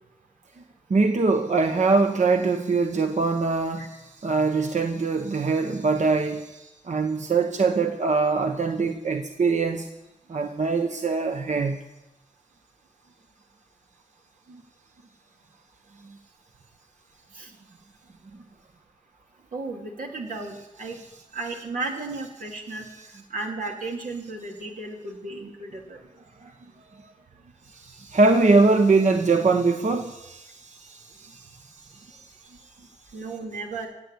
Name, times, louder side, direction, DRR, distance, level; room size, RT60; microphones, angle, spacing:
voice 1, 0.9-9.9 10.3-11.8 14.5-14.6 23.0-23.1 26.4-26.5 27.6-32.9, right 3 dB, 60° right, 5 dB, 1.1 m, -23 dB
voice 2, 19.5-21.0 21.3-22.9 23.3-26.0 33.1-33.9, right 3 dB, 85° right, 0 dB, 2.5 m, -34 dB
16.5 x 8.2 x 8.3 m, 0.96 s
cardioid pair, 50°, 14 cm